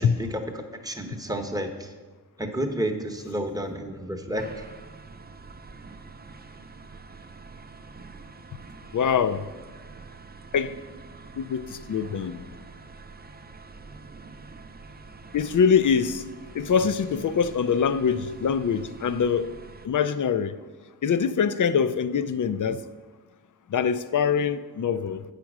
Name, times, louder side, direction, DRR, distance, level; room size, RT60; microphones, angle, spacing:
voice 1, 0.0-1.9 2.4-4.6, right 1 dB, 10° right, 0.9 m, -31 dB
sound 1, 4.3-19.9, right 4 dB, 25° right, 0.5 m, -46 dB
voice 2, 8.9-9.4 10.5-10.7 11.4-12.4 15.3-16.2 16.5-19.5 19.8-20.6 21.0-22.8 23.7-25.2, left 6 dB, 55° left, 0.5 m, -24 dB
8.2 x 5.1 x 6.0 m
wide cardioid pair, 80°, 39 cm